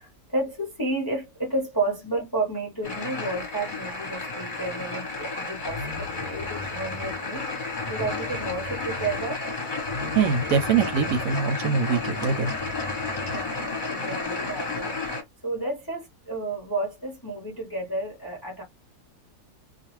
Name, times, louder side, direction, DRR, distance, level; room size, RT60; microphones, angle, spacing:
voice 1, 0.0-9.4 13.2-15.0 15.4-18.6, right 2 dB, 20° left, 0.6 m, -31 dB
sound 1, 2.8-15.2, left 3 dB, 40° left, 0.9 m, -32 dB
sound 2, 5.7-7.3 7.8-9.3 9.8-11.4 11.9-13.5, left 3 dB, 90° left, 1.2 m, -39 dB
voice 2, 10.1-12.5, right 6 dB, 70° right, 0.9 m, -23 dB
2.4 x 2.3 x 3.0 m
omnidirectional pair, 1.7 m